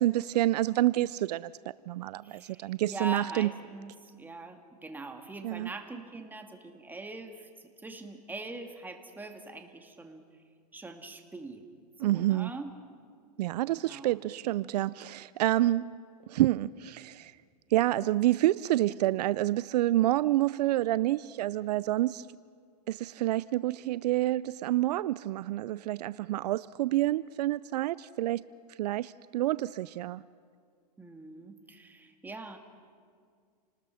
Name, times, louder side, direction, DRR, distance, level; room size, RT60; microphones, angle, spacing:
voice 1, 0.0-1.5 1.9-3.5 5.4-5.7 12.0-12.5 13.4-15.9 16.3-17.3 17.7-22.3 22.9-28.4 28.8-30.2, right 15 dB, 70° right, 19 dB, 0.5 m, -28 dB
voice 2, 2.2-7.5 7.8-10.2 10.7-11.6 12.0-12.7 13.7-14.2 31.0-32.6, right 2 dB, 10° right, 5 dB, 1.8 m, -42 dB
28.0 x 20.0 x 5.7 m, 2.1 s
hypercardioid pair, 125°, 21 cm